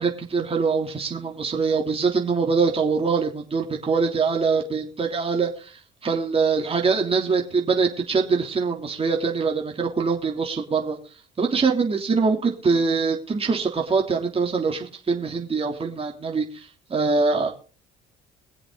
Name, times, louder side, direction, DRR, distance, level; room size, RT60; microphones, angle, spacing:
voice 1, 0.0-11.0 11.4-17.5, right 4 dB, 30° right, 1 dB, 3.3 m, -23 dB
23.0 x 7.9 x 4.0 m, 0.36 s
cardioid pair, 95°, 20 cm